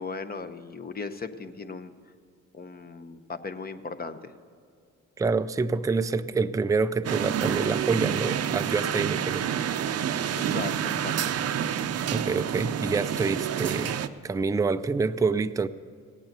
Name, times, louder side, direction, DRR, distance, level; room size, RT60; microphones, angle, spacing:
voice 1, 0.0-1.9 2.5-4.3 10.4-11.1, left 4 dB, 30° left, 9 dB, 0.9 m, -37 dB
voice 2, 5.2-9.5 12.1-15.7, right 4 dB, 10° right, 10 dB, 0.4 m, -27 dB
sound 1, 7.0-14.1, right 9 dB, 55° right, 0.6 m, -28 dB
17.5 x 8.9 x 6.7 m, 2.3 s
cardioid pair, 90°, 30 cm